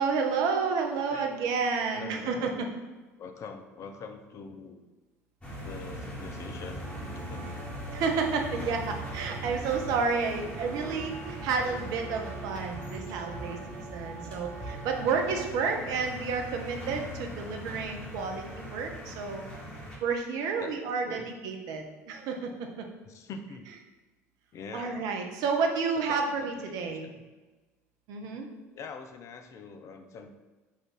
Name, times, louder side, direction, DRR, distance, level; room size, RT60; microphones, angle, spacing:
voice 1, 0.0-2.7 7.9-19.5 20.0-22.9 24.7-27.1 28.1-28.5, right 5 dB, 50° right, 3 dB, 0.6 m, -30 dB
voice 2, 1.1-1.4 1.9-2.7 3.2-4.8 5.6-7.5 9.5-9.6 14.9-15.4 20.6-20.7 21.0-21.3 23.0-23.7 24.5-25.1 25.9-27.2 28.7-30.3, left 5 dB, 40° left, 6 dB, 0.5 m, -44 dB
sound 1, 5.4-20.0, equal, 15° left, 1.3 m, -40 dB
sound 2, 6.8-15.5, right 5 dB, 35° right, 1.1 m, -45 dB
4.1 x 2.5 x 4.6 m, 1.2 s
figure-of-eight pair, 65°, 8 cm